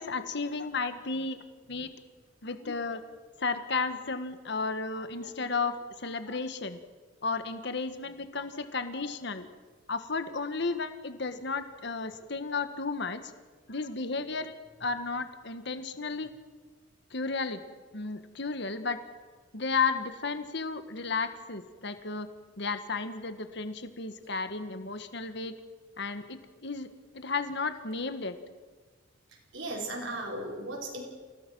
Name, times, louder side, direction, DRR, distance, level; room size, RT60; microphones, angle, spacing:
voice 1, 0.0-1.9 2.4-3.0 3.4-6.8 7.2-9.5 9.9-13.3 13.7-16.3 17.1-17.6 17.9-19.0 19.5-22.3 22.6-25.5 26.0-28.4, left 4 dB, 60° left, 9 dB, 1.5 m, -33 dB
voice 2, 29.3-31.0, right 1 dB, 70° right, 0 dB, 5.1 m, -36 dB
28.0 x 17.5 x 6.2 m, 1.4 s
head